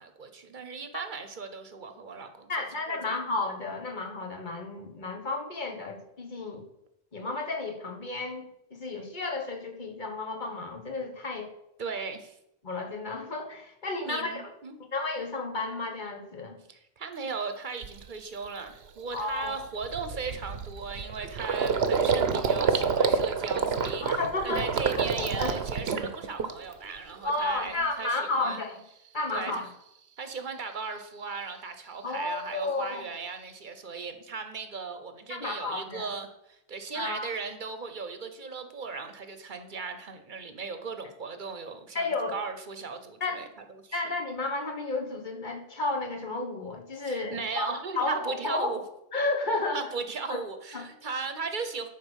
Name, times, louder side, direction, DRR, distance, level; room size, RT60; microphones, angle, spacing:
voice 1, 0.0-2.5 2.9-3.2 11.8-12.4 14.0-14.8 16.7-28.6 29.3-29.7 30.2-44.0 47.0-48.8 49.7-51.9, right 4 dB, 50° right, 8 dB, 1.0 m, -37 dB
voice 2, 2.5-6.7 7.1-11.5 12.6-14.4 14.9-16.6 19.1-19.5 24.0-24.7 25.1-25.6 27.2-28.8 29.1-29.7 32.0-33.0 35.3-36.1 36.9-37.3 41.9-42.3 43.2-43.4 43.9-48.8 49.1-49.8 50.3-50.4 50.7-50.9, left 3 dB, 50° left, 2 dB, 1.5 m, -32 dB
Gurgling, 17.2-17.3 17.8-18.1 18.4-18.6 18.9-26.9 27.2-27.9, right 5 dB, 80° right, 1.1 m, -28 dB
10.5 x 4.6 x 6.4 m, 0.84 s
omnidirectional pair, 1.1 m